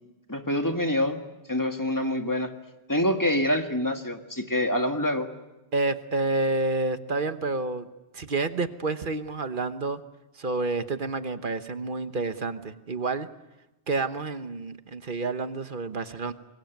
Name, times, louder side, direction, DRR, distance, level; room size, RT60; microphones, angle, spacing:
voice 1, 0.3-1.2 1.5-2.5 2.9-5.3, left 1 dB, 15° left, 5 dB, 1.9 m, -26 dB
voice 2, 5.7-7.9 8.1-10.0 10.4-13.3 13.9-16.3, right 3 dB, 50° right, 10 dB, 1.3 m, -29 dB
25.5 x 22.5 x 9.2 m, 1.0 s
omnidirectional pair, 1.1 m